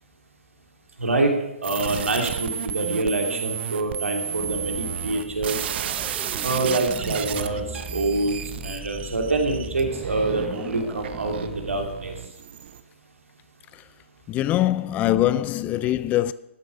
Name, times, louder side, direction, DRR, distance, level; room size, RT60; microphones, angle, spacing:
voice 1, 1.0-1.3 1.6-5.6 6.4-8.4 8.6-12.1, right 2 dB, 85° right, 2.7 m, -26 dB
sound 1, 1.6-12.8, right 9 dB, 55° right, 0.8 m, -33 dB
sound 2, 4.3-11.9, right 2 dB, 5° right, 0.9 m, -39 dB
voice 2, 14.3-16.3, left 13 dB, 20° left, 0.3 m, -23 dB
13.0 x 7.8 x 4.9 m
hypercardioid pair, 130°, 7 cm